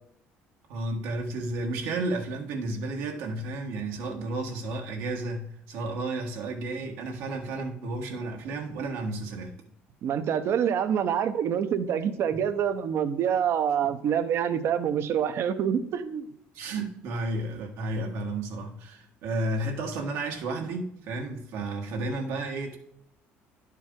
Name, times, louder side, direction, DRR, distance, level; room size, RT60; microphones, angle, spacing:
voice 1, 0.7-9.5 12.3-12.4 16.5-22.8, right 2 dB, 80° right, 1.5 m, -32 dB
voice 2, 10.0-16.3, right 8 dB, 60° right, 0.7 m, -26 dB
11.0 x 4.6 x 3.7 m
cardioid pair, 105°, 5 cm